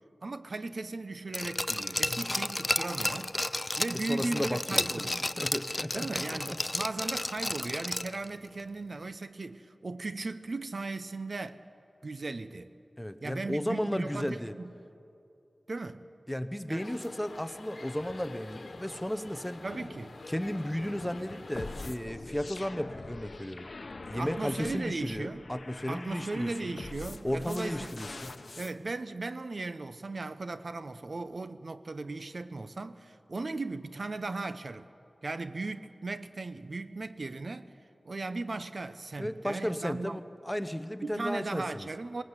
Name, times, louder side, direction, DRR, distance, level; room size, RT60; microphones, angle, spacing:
voice 1, 0.2-3.3 3.8-5.3 5.9-11.6 12.0-12.7 13.2-14.7 15.7-16.0 16.7-16.8 19.6-20.2 24.1-25.4 25.9-28.0 28.6-34.9 35.2-37.7 38.0-40.2 41.0-42.2, right 3 dB, 60° right, 0.7 m, -37 dB
Glass, 1.3-8.3 8.6-8.7, left 1 dB, 25° left, 0.4 m, -32 dB
voice 2, 3.9-5.1 5.4-6.6 13.0-14.5 16.3-19.6 20.3-23.7 24.1-26.7 27.2-28.3 39.2-41.9, equal, 5° left, 0.8 m, -34 dB
sound 1, 16.8-21.9, left 3 dB, 80° left, 1.2 m, -46 dB
sound 2, 21.5-28.7, left 3 dB, 65° left, 0.9 m, -44 dB
19.5 x 19.5 x 8.1 m
wide cardioid pair, 85°, 0 cm